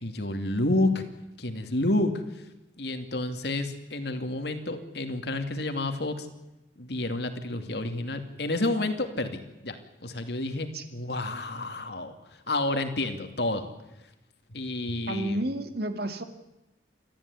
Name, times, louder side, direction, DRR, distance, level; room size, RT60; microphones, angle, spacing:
voice 1, 0.0-1.0 1.4-2.2 2.8-6.3 6.8-12.1 12.5-13.7 14.5-15.4, left 2 dB, 60° left, 7 dB, 2.6 m, -30 dB
voice 2, 15.1-16.2, right 1 dB, 55° right, 8 dB, 2.3 m, -31 dB
29.0 x 13.5 x 9.8 m, 0.96 s
head